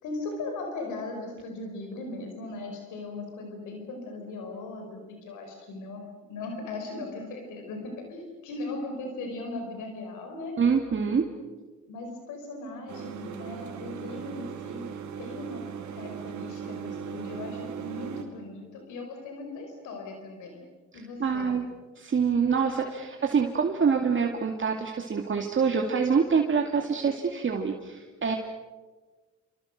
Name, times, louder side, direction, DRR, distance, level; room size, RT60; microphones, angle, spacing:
voice 1, 0.0-6.0 6.3-10.6 11.9-14.9 15.2-15.7 15.9-20.6 20.9-21.5, left 2 dB, 90° left, 3 dB, 5.1 m, -38 dB
voice 2, 10.6-11.3 21.2-21.6 22.0-28.4, right 6 dB, 40° right, 2 dB, 2.5 m, -25 dB
sound 1, 12.9-18.2, right 7 dB, 70° right, 3.7 m, -38 dB
29.5 x 26.0 x 6.7 m, 1.3 s
cardioid pair, 90°, 30 cm